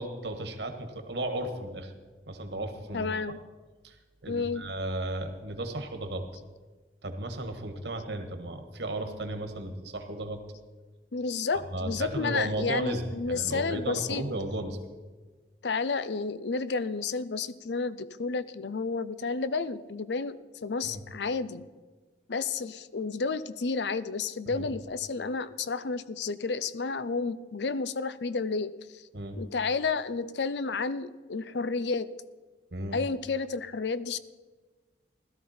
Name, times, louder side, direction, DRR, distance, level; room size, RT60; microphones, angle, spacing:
voice 1, 0.0-1.9 2.3-3.1 3.8-4.0 4.2-6.3 7.0-10.4 11.5-14.8 20.9-21.0 24.5-24.7 29.1-29.4 32.7-33.0, right 1 dB, 80° right, 6 dB, 1.7 m, -34 dB
voice 2, 2.9-3.4 4.3-4.6 11.1-14.2 15.6-21.7 22.3-29.1 29.4-32.1 32.9-34.2, left 4 dB, 80° left, 15 dB, 0.6 m, -31 dB
16.5 x 13.0 x 4.3 m, 1.3 s
head